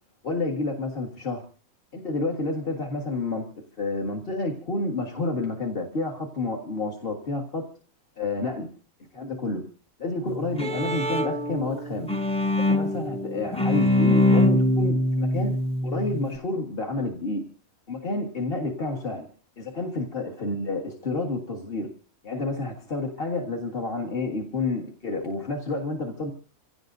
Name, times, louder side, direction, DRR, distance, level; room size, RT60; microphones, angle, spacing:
voice 1, 0.2-1.4 1.9-3.5 3.8-7.7 8.2-8.7 9.1-9.7 10.0-12.1 12.6-15.6 15.8-17.4 17.9-19.3 19.6-21.9 22.2-26.3, left 2 dB, 40° left, 0 dB, 1.9 m, -29 dB
Bowed string instrument, 10.3-16.4, left 1 dB, 5° left, 0.6 m, -24 dB
27.5 x 17.0 x 2.7 m, 0.38 s
omnidirectional pair, 1.5 m